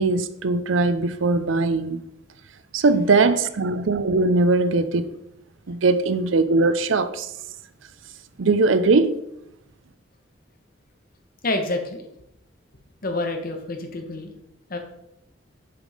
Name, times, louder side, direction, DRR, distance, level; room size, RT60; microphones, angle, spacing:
voice 1, 0.0-2.0 2.7-5.1 5.7-7.3 8.4-9.1, right 3 dB, 75° right, 0.6 m, -20 dB
voice 2, 11.4-12.0 13.0-14.3 14.7-14.8, left 2 dB, 45° left, 1.2 m, -27 dB
6.9 x 5.4 x 5.0 m
head